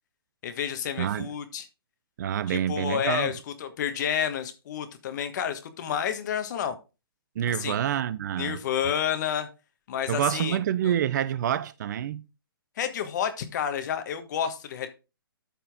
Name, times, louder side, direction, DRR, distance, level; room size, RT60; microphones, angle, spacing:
voice 1, 0.4-1.7 2.5-6.8 7.5-7.8 8.4-9.5 9.9-10.6 10.8-10.9 12.8-14.9, left 8 dB, 50° left, 1.4 m, -30 dB
voice 2, 1.0-1.3 2.2-3.3 7.4-8.6 10.1-12.2, right 10 dB, 50° right, 0.5 m, -27 dB
13.0 x 4.4 x 3.6 m
hypercardioid pair, 140°, 13 cm